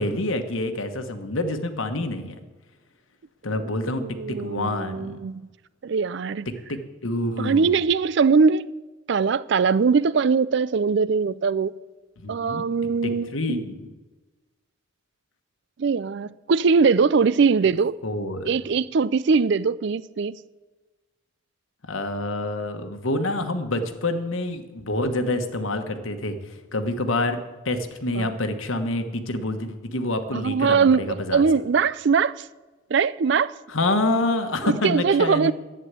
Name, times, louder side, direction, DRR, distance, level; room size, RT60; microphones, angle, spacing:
voice 1, 0.0-2.3 3.4-5.2 6.7-7.7 12.2-12.7 13.0-13.9 18.0-18.5 21.9-31.4 33.7-35.5, left 2 dB, 70° left, 1.2 m, -27 dB
voice 2, 3.5-5.4 5.8-6.5 7.4-8.6 9.1-11.7 12.3-13.6 15.8-18.0 18.5-20.3 28.1-28.3 30.3-32.5 32.9-33.5 34.6-35.5, right 5 dB, 55° right, 0.4 m, -21 dB
11.0 x 8.9 x 8.2 m
head